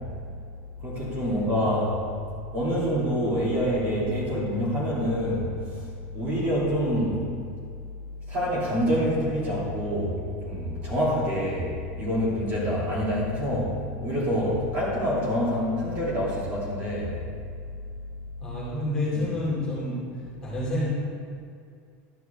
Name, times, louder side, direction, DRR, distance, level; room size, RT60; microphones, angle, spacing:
voice 1, 0.8-2.0 2.5-5.8 6.1-7.3 8.3-10.1 10.4-11.7 12.0-13.7 14.0-17.1 19.1-19.2, equal, 30° right, -6 dB, 2.5 m, -26 dB
voice 2, 18.4-20.0 20.4-20.9, left 1 dB, 10° left, -8 dB, 2.4 m, -29 dB
12.0 x 9.3 x 3.4 m, 2.3 s
supercardioid pair, 180°, 7 cm